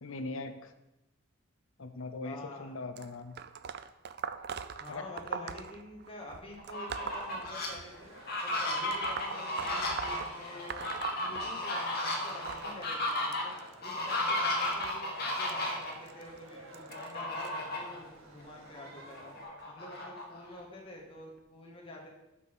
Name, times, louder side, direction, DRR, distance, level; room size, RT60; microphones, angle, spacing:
voice 1, 0.0-0.7 1.8-3.4 4.9-5.4, left 3 dB, 65° left, 9 dB, 0.7 m, -41 dB
voice 2, 2.2-2.7 4.8-8.1 8.4-10.9 11.2-13.5 13.8-19.3 19.7-22.1, left 1 dB, 25° left, -2 dB, 1.6 m, -48 dB
sound 1, 3.0-8.1 8.8-11.9 12.1-17.5 18.3-18.5 19.6-19.7 20.6-20.7 21.4-21.5, right 6 dB, 50° right, 0.4 m, -43 dB
Fowl, 6.6-7.7 8.2-15.9 16.9-18.0 18.4-18.5 18.9-20.6, left 1 dB, 45° left, 1.5 m, -34 dB
sound 2, 6.8-19.4, right 2 dB, 70° right, 2.0 m, -53 dB
6.2 x 5.8 x 6.1 m, 0.95 s
head